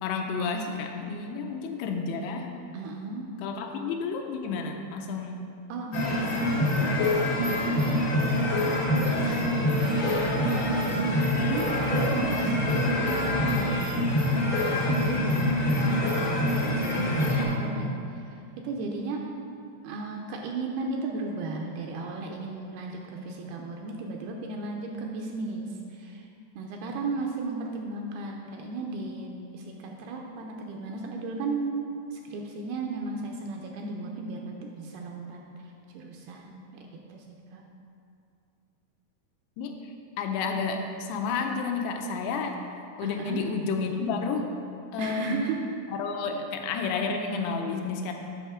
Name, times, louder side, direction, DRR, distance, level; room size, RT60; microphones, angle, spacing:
voice 1, 0.0-2.5 3.4-5.4 6.6-7.3 39.6-42.6 43.0-44.5 44.9-45.4 45.9-48.1, left 4 dB, 85° left, 3 dB, 2.6 m, -31 dB
voice 2, 2.7-3.3 3.7-3.8 5.7-6.4 7.7-8.1 8.5-9.2 9.8-12.6 12.9-14.1 14.7-19.2 19.8-26.3 26.5-31.8 32.1-35.4 35.9-37.2 37.5-37.6 43.0-43.4 45.0-45.6, right 3 dB, 85° right, 1 dB, 2.4 m, -35 dB
sound 1, 5.9-17.4, left 1 dB, 60° left, 1.3 m, -25 dB
7.9 x 6.6 x 4.9 m, 2.5 s
omnidirectional pair, 4.9 m